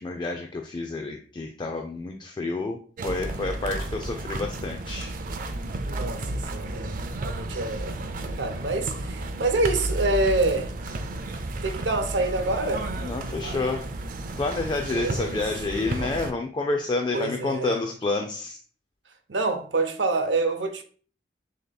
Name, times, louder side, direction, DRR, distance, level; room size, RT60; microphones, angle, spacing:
voice 1, 0.0-5.1 13.0-13.9 14.4-18.6, left 3 dB, 25° left, 0.3 m, -29 dB
sound 1, 3.0-16.3, right 2 dB, 50° right, 0.4 m, -32 dB
voice 2, 5.8-10.7 11.6-12.9 14.9-15.4 17.1-17.8 19.3-20.8, right 2 dB, 85° right, 0.6 m, -27 dB
6.3 x 2.9 x 2.2 m
head